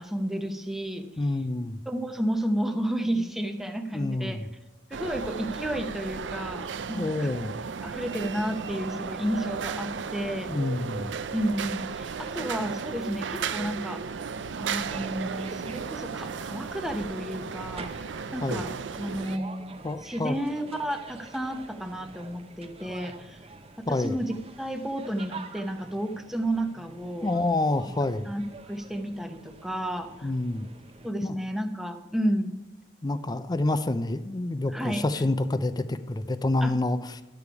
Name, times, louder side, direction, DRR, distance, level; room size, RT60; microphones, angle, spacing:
voice 1, 0.0-1.0 1.9-4.4 4.9-7.3 7.8-10.5 11.3-14.0 14.6-18.7 19.0-19.8 20.0-23.4 23.8-27.3 28.2-28.4 28.7-30.3 31.0-32.6 34.7-35.0 36.6-36.7, right 1 dB, ahead, 6 dB, 0.8 m, -31 dB
voice 2, 1.2-1.8 3.9-4.5 6.9-7.5 10.5-11.2 18.4-18.6 19.8-20.3 23.9-24.1 27.2-28.3 30.2-30.7 31.2-31.4 33.0-37.2, left 2 dB, 20° left, 12 dB, 0.5 m, -28 dB
sound 1, 4.9-19.4, right 6 dB, 85° right, 0.5 m, -35 dB
sound 2, 14.9-31.1, right 3 dB, 35° right, 0.7 m, -47 dB
11.5 x 7.0 x 4.7 m, 1.0 s
head